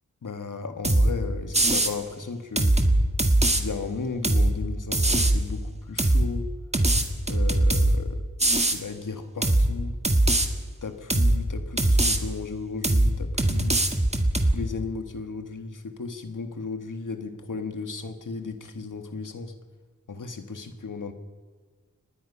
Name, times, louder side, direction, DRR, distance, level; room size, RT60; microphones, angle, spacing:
voice 1, 0.2-2.8 3.5-6.5 7.3-8.2 8.5-10.0 10.8-13.9 14.4-19.5 20.1-21.1, left 4 dB, 90° left, 7 dB, 1.9 m, -35 dB
sound 1, 0.8-1.1 1.5-1.9 2.6-3.6 4.2-4.5 4.9-5.4 6.0-6.3 6.7-8.0 8.4-8.8 9.4-9.7 10.0-10.5 11.1-11.4 11.8-12.2 12.8-13.1 13.4-14.5, right 1 dB, 20° right, 1.8 m, -21 dB
25.0 x 20.5 x 5.7 m, 1.5 s
wide cardioid pair, 85°, 30 cm